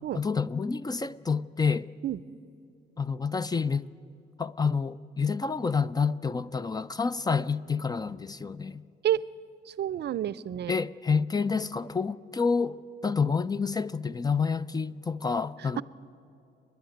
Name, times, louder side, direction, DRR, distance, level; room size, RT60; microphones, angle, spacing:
voice 1, 0.1-1.9 3.0-3.9 4.4-8.8 10.7-15.8, left 5 dB, 20° left, 0.4 m, -28 dB
voice 2, 9.7-10.7 15.6-15.8, right 11 dB, 55° right, 0.5 m, -29 dB
29.5 x 10.5 x 9.1 m
cardioid pair, 90°, 20 cm